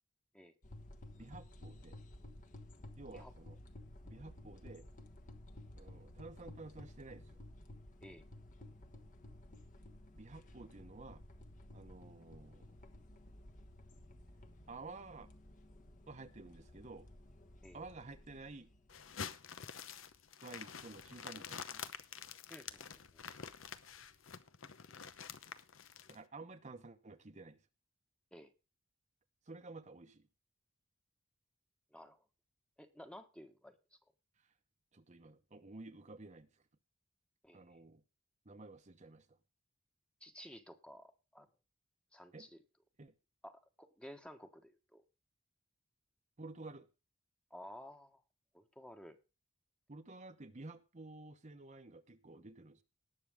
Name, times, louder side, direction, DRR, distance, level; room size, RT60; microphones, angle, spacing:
sound 1, 0.6-19.1, left 1 dB, 40° left, 1.3 m, -55 dB
voice 1, 1.1-2.0 3.0-3.6 4.0-4.9 5.8-7.4 10.1-11.2 11.7-12.6 14.7-15.3 16.1-17.1 17.7-18.7 20.4-21.9 26.1-27.6 29.5-30.3 34.4-34.5 34.9-36.6 37.5-38.0 38.4-39.4 42.3-42.5 43.0-43.1 46.4-46.9 49.9-52.8, right 3 dB, 35° right, 1.0 m, -52 dB
sound 2, 18.9-26.2, left 7 dB, 80° left, 0.9 m, -48 dB
voice 2, 22.5-23.2 28.3-28.5 31.9-32.2 32.8-33.8 37.4-37.8 40.2-41.5 42.1-42.6 43.4-45.0 47.5-48.2 48.5-49.2, equal, 5° left, 1.2 m, -54 dB
19.0 x 6.9 x 3.6 m
head